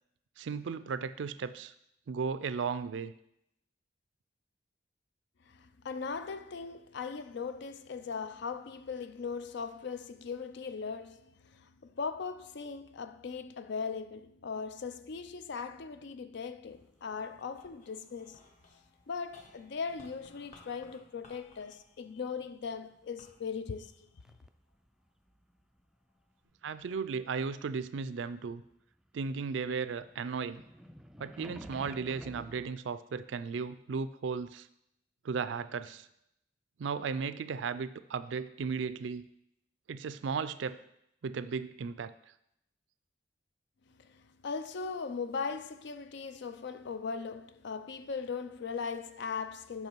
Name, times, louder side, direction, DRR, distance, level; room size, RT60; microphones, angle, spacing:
voice 1, 0.4-1.7 2.1-3.1 26.6-28.6 29.1-30.6 31.2-34.7 35.2-36.1 36.8-39.3 39.9-40.8 41.2-42.1, right 5 dB, 75° right, 0.4 m, -35 dB
voice 2, 5.5-18.4 19.1-24.1 44.0-49.9, left 5 dB, 65° left, 0.5 m, -39 dB
sound 1, 16.6-25.1 25.7-26.4, left 2 dB, 40° left, 1.0 m, -62 dB
sound 2, 16.7-19.6 19.9-21.1 21.8-23.3 23.6-28.7 29.0-32.8, equal, 5° right, 0.3 m, -53 dB
8.0 x 5.6 x 4.5 m
head